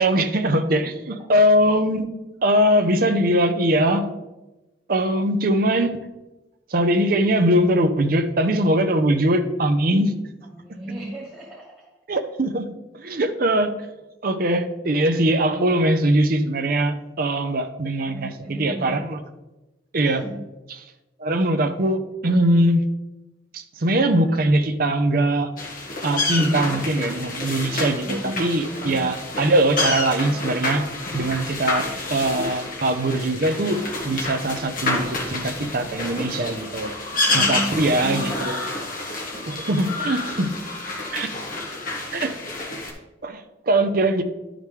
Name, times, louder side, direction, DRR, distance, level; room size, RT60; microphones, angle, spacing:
voice 1, 0.0-2.1 2.4-4.1 4.9-6.0 6.7-10.1 12.1-12.7 13.0-13.8 14.2-19.2 19.9-20.2 20.7-20.9 21.2-22.8 23.5-25.5 26.0-30.8 31.1-36.9 37.3-38.6 39.5-40.5 41.1-41.3 42.1-42.3 43.2-44.2, right 1 dB, 55° right, 6 dB, 0.7 m, -21 dB
voice 2, 10.5-11.7 18.0-19.0 20.0-20.4 28.0-29.1 37.1-38.6, equal, 5° right, -8 dB, 1.5 m, -34 dB
sound 1, 25.6-42.9, left 2 dB, 50° left, 1.6 m, -28 dB
12.0 x 5.1 x 3.3 m, 1.0 s
head